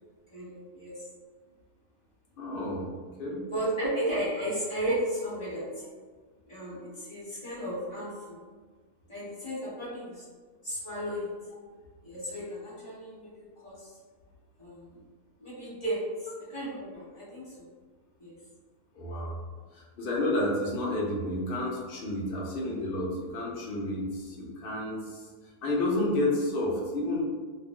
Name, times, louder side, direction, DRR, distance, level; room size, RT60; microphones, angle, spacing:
voice 1, 0.3-0.9 3.5-5.9 6.5-8.4 9.1-10.2 10.6-11.3 12.0-13.9 14.6-15.0 15.4-17.6 18.2-18.4, right 1 dB, 25° left, -9 dB, 1.0 m, -34 dB
voice 2, 2.4-2.9 3.2-3.4 18.9-19.4 19.7-25.3 25.6-27.2, left 1 dB, 65° left, -3 dB, 0.5 m, -30 dB
2.5 x 2.0 x 3.5 m, 1.5 s
omnidirectional pair, 1.6 m